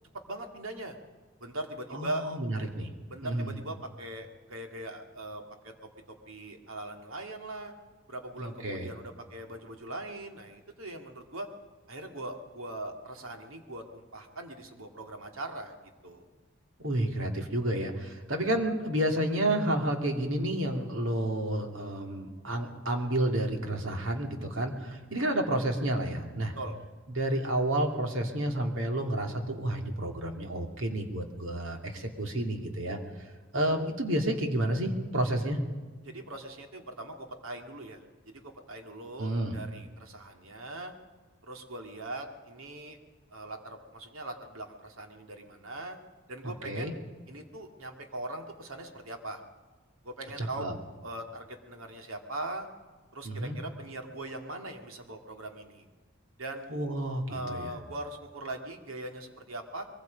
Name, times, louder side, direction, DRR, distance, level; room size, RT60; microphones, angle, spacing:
voice 1, 0.3-1.0 1.4-2.2 3.1-5.7 6.1-7.7 8.1-11.5 11.9-15.7 16.0-16.3 26.6-26.7 36.0-38.4 38.7-40.9 41.4-43.0 43.3-46.0 46.3-46.9 47.3-49.4 50.0-50.7 51.0-52.7 53.1-55.9 56.4-56.9 57.3-59.9, right 1 dB, 85° right, 4 dB, 2.4 m, -40 dB
voice 2, 1.9-2.9 3.2-3.5 8.4-8.9 16.8-26.5 27.1-33.0 33.5-35.6 39.2-39.6 46.4-46.9 50.4-50.7 53.2-53.6 56.7-57.7, right 1 dB, 70° right, 4 dB, 2.5 m, -30 dB
23.0 x 22.5 x 5.3 m, 1.4 s
head